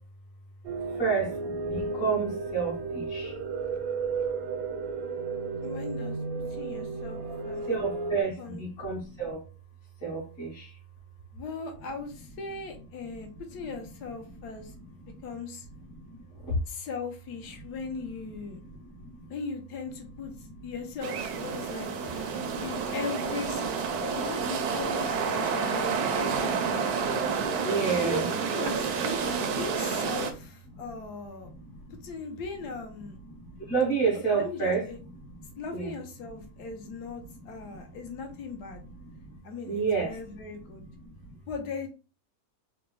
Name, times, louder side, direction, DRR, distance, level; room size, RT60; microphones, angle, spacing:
sound 1, 0.6-8.2, right 4 dB, 90° right, 1.4 m, -33 dB
voice 1, 1.0-1.3 1.7-3.3 7.7-9.4 10.0-10.6 27.6-28.3 33.7-34.9 35.7-35.9 39.7-40.1, right 5 dB, 45° left, -3 dB, 1.7 m, -28 dB
voice 2, 5.6-6.2 6.5-7.6 8.4-8.6 11.3-14.7 15.2-15.7 16.7-18.6 19.3-20.3 20.6-26.8 28.0-31.5 31.9-33.2 34.3-35.0 35.6-38.8 39.4-40.8 41.5-41.9, left 4 dB, 65° left, 4 dB, 1.2 m, -38 dB
sound 2, 21.0-30.3, right 5 dB, 70° right, 0.9 m, -29 dB
3.9 x 2.2 x 3.0 m, 0.34 s
omnidirectional pair, 2.1 m